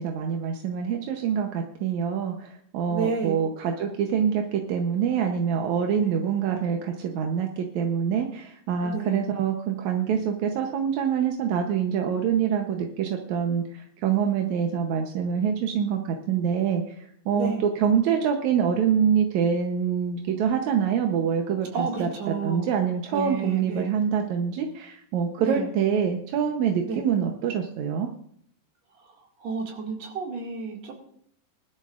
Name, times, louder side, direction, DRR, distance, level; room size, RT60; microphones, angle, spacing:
voice 1, 0.0-28.1, right 7 dB, 70° right, 3 dB, 1.9 m, -25 dB
voice 2, 2.9-3.4 6.0-6.1 8.8-9.2 17.3-17.6 21.7-22.7 23.1-23.9 25.4-25.7 26.8-27.0 29.4-30.9, right 5 dB, 50° right, 0 dB, 3.1 m, -31 dB
20.0 x 13.0 x 2.5 m, 0.66 s
omnidirectional pair, 4.1 m